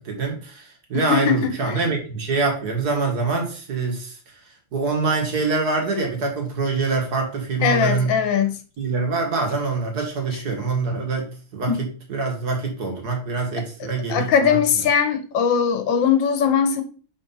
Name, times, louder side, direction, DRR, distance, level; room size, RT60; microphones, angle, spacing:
voice 1, 0.0-4.2 4.7-8.1 8.8-14.6, right 4 dB, 55° right, 2.0 m, -25 dB
voice 2, 0.9-1.9 7.6-8.6 11.7-11.8 14.1-16.8, left 7 dB, 75° left, 1.5 m, -20 dB
4.9 x 4.4 x 5.4 m
omnidirectional pair, 2.1 m